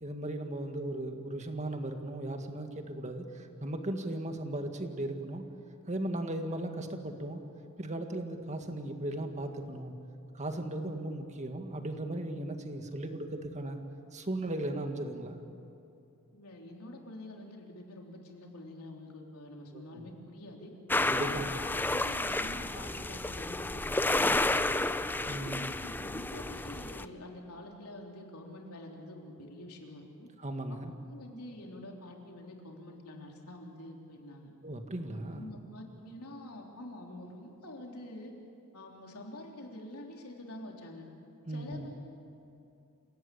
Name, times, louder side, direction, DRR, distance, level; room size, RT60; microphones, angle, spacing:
voice 1, 0.0-5.4 5.9-7.4 7.8-9.9 10.3-13.8 14.1-15.4 19.7-20.1 21.0-21.6 25.3-25.7 30.4-30.9 34.6-35.5 41.5-41.9, right 1 dB, 30° right, 5 dB, 1.9 m, -37 dB
voice 2, 16.3-20.7 21.1-23.8 24.1-24.7 25.2-30.3 30.7-30.8 31.1-34.5 35.3-38.3 38.7-41.1 41.5-42.2, left 1 dB, 80° left, 1 dB, 3.7 m, -47 dB
sound 1, 20.9-27.0, left 2 dB, 10° left, 0.5 m, -31 dB
28.0 x 17.0 x 8.5 m, 2.7 s
head